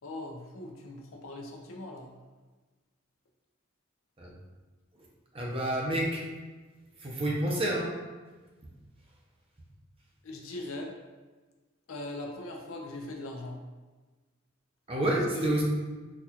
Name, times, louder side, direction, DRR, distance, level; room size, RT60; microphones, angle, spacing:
voice 1, 0.0-2.1 10.2-10.9 11.9-13.6 15.3-15.5, left 2 dB, 75° left, 1 dB, 0.5 m, -40 dB
voice 2, 5.3-6.2 7.0-7.9 14.9-15.6, right 1 dB, 25° right, -3 dB, 0.6 m, -28 dB
4.1 x 2.4 x 2.8 m, 1.3 s
head